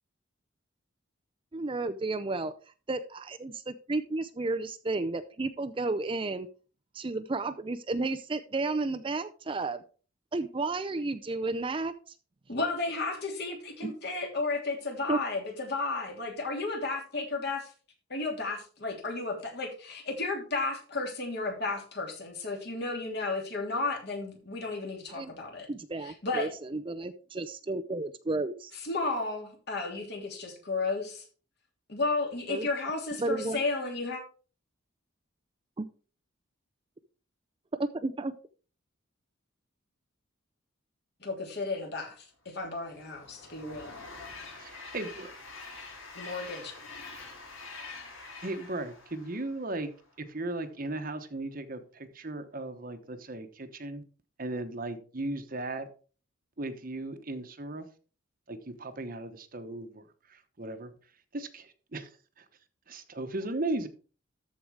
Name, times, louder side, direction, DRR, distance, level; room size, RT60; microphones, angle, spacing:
voice 1, 1.5-2.5 2.9-6.5 6.9-9.8 10.3-12.1 13.8-13.9 15.1-15.2 25.1-25.3 25.7-28.7 32.5-32.7 33.2-33.6 35.8-35.9 37.8-38.4, right 3 dB, 25° right, 10 dB, 0.4 m, -32 dB
voice 2, 12.5-17.7 18.1-25.7 26.0-26.5 28.8-31.2 31.9-34.2 41.2-43.9 46.1-46.7, left 3 dB, 55° left, 1 dB, 3.1 m, -33 dB
Train, 42.6-50.0, left 3 dB, 80° left, 4.4 m, -46 dB
voice 3, 44.6-45.3 46.4-46.5 48.4-49.9 50.2-54.0 54.4-55.9 56.6-57.9 58.5-60.0 60.3-60.9 61.3-62.1 62.4-62.5 62.9-63.9, right 2 dB, 45° right, 9 dB, 1.0 m, -36 dB
13.5 x 4.7 x 4.7 m, 0.38 s
head